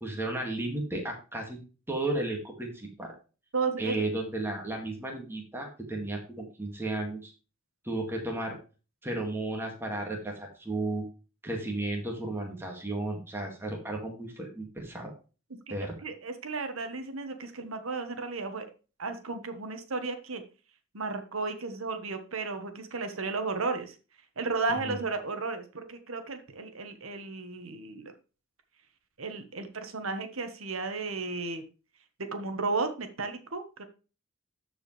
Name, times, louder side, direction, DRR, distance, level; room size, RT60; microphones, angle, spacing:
voice 1, 0.0-1.6 1.9-3.1 3.8-7.3 7.8-8.6 9.0-11.0 11.4-15.1 15.7-15.9 24.9-25.0, right 2 dB, 10° right, 0 dB, 2.0 m, -34 dB
voice 2, 3.5-4.0 15.7-18.7 19.0-20.4 20.9-24.0 24.4-28.1 29.2-31.6 32.3-33.8, right 3 dB, 80° right, 7 dB, 1.3 m, -34 dB
13.5 x 4.8 x 3.2 m, 0.34 s
head